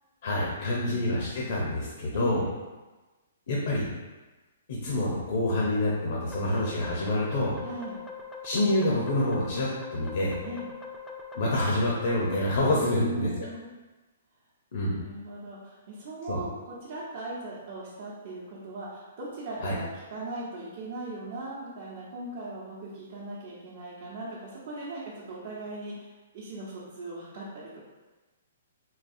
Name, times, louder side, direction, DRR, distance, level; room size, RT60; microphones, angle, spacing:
voice 1, 0.2-2.4 3.5-3.9 4.7-7.5 8.4-10.4 11.3-13.5 14.7-15.0 16.3-16.4 19.6-19.7, left 1 dB, 65° left, -4 dB, 0.7 m, -27 dB
voice 2, 2.1-2.5 7.6-8.0 10.4-10.6 12.7-13.7 14.8-27.8, right 2 dB, 50° right, -7 dB, 0.8 m, -39 dB
sound 1, 6.3-12.5, left 4 dB, 10° left, 0.3 m, -42 dB
3.9 x 2.3 x 2.6 m, 1.2 s
hypercardioid pair, 140°, 0 cm